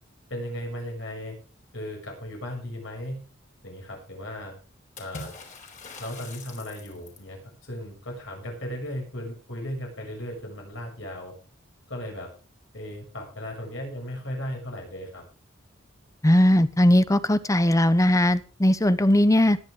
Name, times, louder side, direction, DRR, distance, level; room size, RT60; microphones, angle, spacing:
voice 1, 0.3-1.4 1.7-3.2 3.6-4.6 5.0-5.4 6.0-11.3 11.9-12.3 12.7-15.2, equal, 70° left, 1 dB, 6.8 m, -36 dB
Water / Splash splatter, 5.0-7.3, left 3 dB, 40° left, 4.2 m, -42 dB
voice 2, 16.2-19.6, left 1 dB, 15° left, 14 dB, 0.8 m, -19 dB
19.5 x 10.0 x 3.8 m, 0.36 s
head